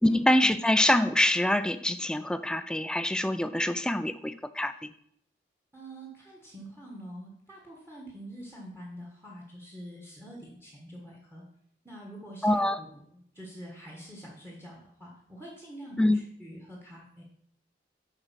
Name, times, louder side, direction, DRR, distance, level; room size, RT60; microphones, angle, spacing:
voice 1, 0.0-4.7 12.4-12.8 16.0-16.2, left 1 dB, 5° left, 11 dB, 0.3 m, -25 dB
voice 2, 5.7-11.4 11.8-17.2, right 1 dB, 15° right, -2 dB, 1.4 m, -46 dB
7.9 x 4.9 x 5.7 m, 0.70 s
head